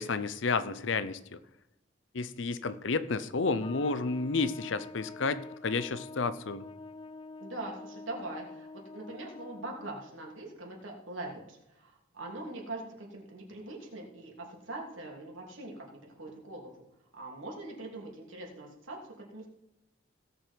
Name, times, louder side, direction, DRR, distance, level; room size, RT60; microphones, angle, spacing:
voice 1, 0.0-1.4 2.1-6.6, left 4 dB, 75° left, 15 dB, 0.7 m, -31 dB
Trumpet, 3.6-10.1, left 3 dB, 25° left, 0.3 m, -46 dB
voice 2, 7.4-16.7 17.1-19.0 19.3-19.5, right 2 dB, 85° right, -1 dB, 3.1 m, -42 dB
17.0 x 6.9 x 4.6 m, 0.90 s
head